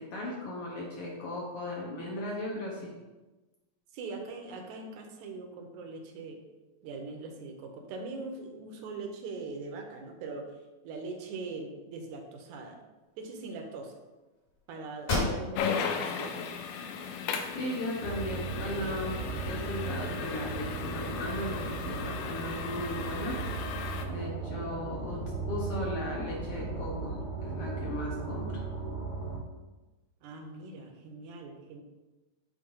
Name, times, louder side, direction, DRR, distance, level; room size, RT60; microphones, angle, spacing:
voice 1, 0.0-2.9 17.5-23.4 24.1-25.2 25.5-28.6, left 1 dB, 60° left, -3 dB, 1.8 m, -36 dB
voice 2, 3.9-6.4 6.8-10.5 10.8-12.8 13.2-13.9 14.7-16.4 30.2-31.8, right 3 dB, 75° right, 3 dB, 2.2 m, -41 dB
sound 1, 14.5-14.6 15.0-15.9 16.3-16.4 17.0-17.9, left 2 dB, 45° left, 2.7 m, -33 dB
sound 2, 15.5-24.1, left 6 dB, 85° left, 1.4 m, -37 dB
sound 3, 18.0-29.4, right 3 dB, 30° right, 0.7 m, -36 dB
8.5 x 2.8 x 5.4 m, 1.2 s
omnidirectional pair, 3.5 m